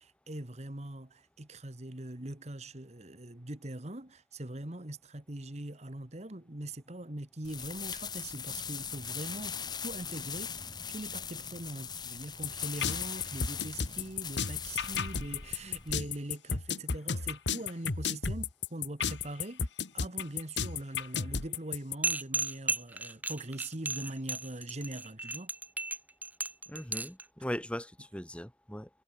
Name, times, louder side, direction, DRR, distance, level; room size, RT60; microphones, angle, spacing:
voice 1, 0.0-19.6 19.9-25.5, right 1 dB, 40° right, 1.8 m, -42 dB
sound 1, 7.4-15.9, left 7 dB, 25° left, 1.2 m, -40 dB
sound 2, 12.4-21.9, left 6 dB, 90° left, 1.5 m, -33 dB
sound 3, 22.0-27.2, right 3 dB, 10° right, 1.4 m, -34 dB
voice 2, 26.7-28.9, equal, 5° left, 1.9 m, -39 dB
head